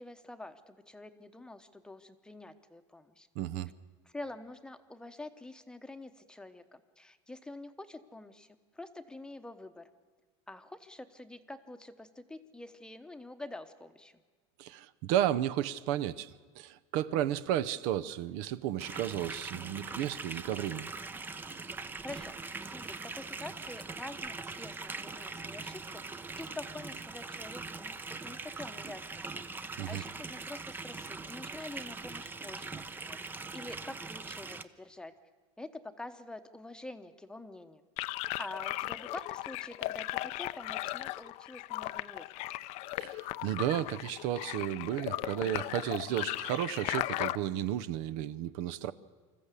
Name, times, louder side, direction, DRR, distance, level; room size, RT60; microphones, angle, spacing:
voice 1, 0.0-3.3 4.1-9.8 10.5-14.1 22.0-29.2 29.6-33.2 33.5-35.1 35.6-37.8 38.4-42.3, left 2 dB, 5° left, 8 dB, 1.0 m, -46 dB
voice 2, 3.3-3.7 14.6-20.9 29.8-30.0 43.0-48.9, right 11 dB, 60° right, 13 dB, 0.8 m, -33 dB
sound 1, 18.8-34.6, right 4 dB, 15° right, 0.7 m, -42 dB
sound 2, 38.0-47.4, left 18 dB, 50° left, 0.6 m, -37 dB
25.5 x 14.0 x 8.3 m, 1.4 s
supercardioid pair, 135°, 15 cm